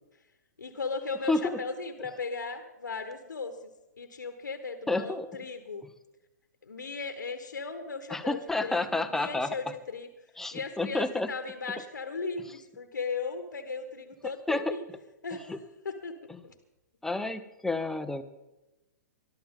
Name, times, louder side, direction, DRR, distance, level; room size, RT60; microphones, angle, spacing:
voice 1, 0.6-3.6 4.0-5.9 6.6-10.1 10.5-14.8 15.2-15.5 15.8-16.2 16.4-16.5, left 4 dB, 85° left, 8 dB, 1.4 m, -37 dB
voice 2, 1.3-1.6 4.9-5.3 5.8-5.9 8.1-9.5 10.4-11.3 14.5-14.7 15.5-15.6 16.3-16.4 17.0-18.2, left 2 dB, 5° left, 9 dB, 0.9 m, -30 dB
22.0 x 13.0 x 3.7 m, 1.0 s
hypercardioid pair, 120°, 10 cm